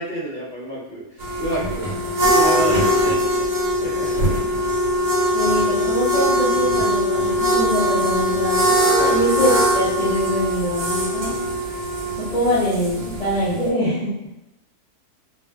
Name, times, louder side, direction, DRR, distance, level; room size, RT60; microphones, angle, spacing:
voice 1, 0.0-3.5 3.8-4.5 9.0-9.2 11.2-11.4, right 1 dB, 45° right, -8 dB, 0.9 m, -29 dB
sound 1, 1.2-13.7, equal, 70° right, 1.2 m, -21 dB
voice 2, 5.3-8.7 9.1-11.3 12.3-14.3, equal, 55° left, -10 dB, 0.4 m, -23 dB
2.6 x 2.4 x 2.2 m, 0.92 s
omnidirectional pair, 1.6 m